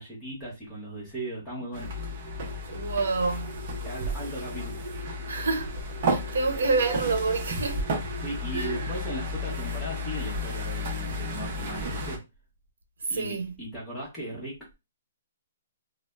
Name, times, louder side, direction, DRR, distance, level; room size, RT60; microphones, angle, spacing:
voice 1, 0.0-1.9 3.8-4.9 8.2-12.2 13.1-14.7, right 1 dB, ahead, 0.9 m, -37 dB
sound 1, 1.7-12.2, left 1 dB, 35° right, 0.6 m, -33 dB
voice 2, 2.7-3.6 5.3-7.9 8.5-8.9 13.0-13.5, right 4 dB, 70° right, 0.8 m, -28 dB
2.5 x 2.0 x 3.2 m
hypercardioid pair, 175°, 0 cm